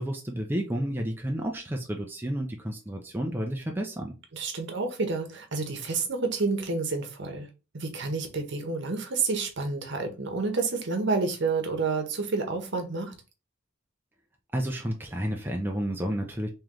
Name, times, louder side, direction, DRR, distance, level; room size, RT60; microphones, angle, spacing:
voice 1, 0.0-4.1 14.5-16.5, right 1 dB, 10° right, 0.4 m, -31 dB
voice 2, 4.3-7.5 7.7-13.1, right 4 dB, 60° right, 0.9 m, -29 dB
3.1 x 3.1 x 3.7 m
head